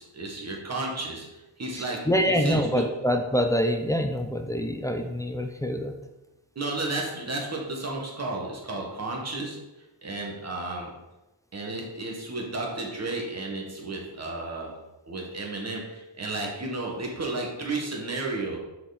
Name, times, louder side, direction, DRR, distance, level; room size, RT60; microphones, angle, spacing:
voice 1, 0.0-2.8 6.5-9.6 10.0-10.9 11.5-14.7 15.1-18.6, right 2 dB, 35° right, -1 dB, 1.6 m, -33 dB
voice 2, 1.8-5.9, equal, 10° left, 5 dB, 0.5 m, -25 dB
5.9 x 4.9 x 4.1 m, 1.0 s
wide cardioid pair, 130°, 44 cm